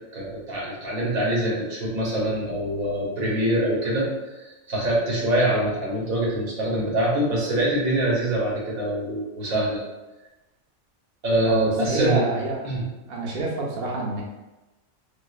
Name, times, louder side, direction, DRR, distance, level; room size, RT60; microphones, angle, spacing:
voice 1, 0.1-9.8 11.2-12.2 12.6-12.8, right 1 dB, 85° right, -5 dB, 1.4 m, -24 dB
voice 2, 11.4-12.7 13.1-14.2, right 2 dB, 55° right, -3 dB, 0.8 m, -27 dB
4.7 x 2.0 x 2.4 m, 1.1 s
omnidirectional pair, 1.4 m